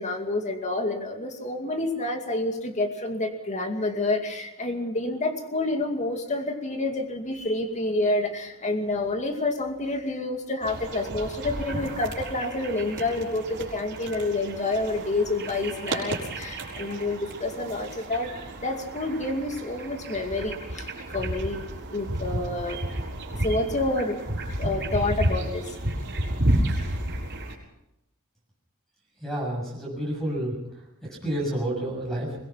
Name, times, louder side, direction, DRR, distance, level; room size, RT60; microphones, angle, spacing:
voice 1, 0.0-18.3 18.6-21.6 21.9-22.8 23.4-24.2 24.6-25.8, left 2 dB, 35° left, 5 dB, 2.4 m, -28 dB
sound 1, 10.6-27.6, right 1 dB, 55° right, 5.1 m, -32 dB
voice 2, 29.2-30.6 31.0-32.4, right 1 dB, ahead, -2 dB, 7.0 m, -29 dB
22.5 x 20.0 x 5.8 m, 0.88 s
head